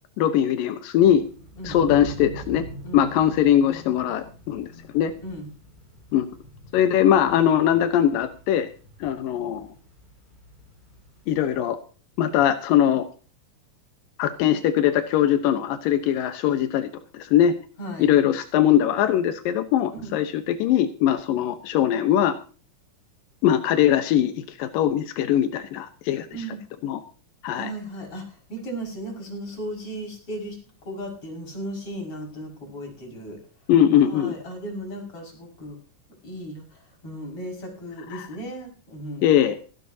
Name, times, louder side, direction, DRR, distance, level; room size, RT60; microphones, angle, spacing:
voice 1, 0.2-1.3 1.6-2.6 2.9-4.7 4.9-5.1 6.1-6.3 6.7-8.7 9.0-9.7 11.3-11.8 12.2-13.0 14.2-17.5 18.0-22.4 23.4-26.3 26.8-27.0 27.4-27.7 33.7-34.3 38.1-38.2 39.2-39.6, left 10 dB, 90° left, 8 dB, 2.8 m, -21 dB
sound 1, 1.0-11.6, right 1 dB, 10° right, 8.1 m, -43 dB
voice 2, 5.2-5.5 17.8-18.1 19.9-20.1 26.3-26.6 27.5-33.4 34.0-35.8 36.2-39.3, right 1 dB, 40° left, 1 dB, 6.8 m, -36 dB
16.5 x 16.0 x 2.8 m, 0.37 s
omnidirectional pair, 3.8 m